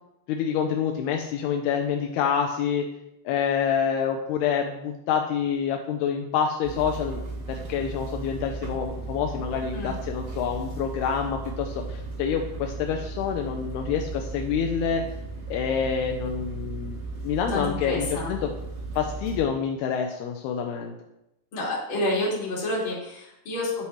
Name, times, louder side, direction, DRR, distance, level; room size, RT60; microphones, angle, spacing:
voice 1, 0.3-2.9 3.3-7.2 7.5-15.0 15.5-17.0 17.2-18.5 19.0-20.9, left 7 dB, 85° left, 3 dB, 2.3 m, -27 dB
sound 1, 6.6-19.5, right 3 dB, 80° right, 4.1 m, -36 dB
voice 2, 17.5-18.3 21.5-23.9, left 1 dB, 35° left, -4 dB, 2.6 m, -29 dB
10.0 x 8.5 x 3.2 m, 0.85 s
omnidirectional pair, 5.3 m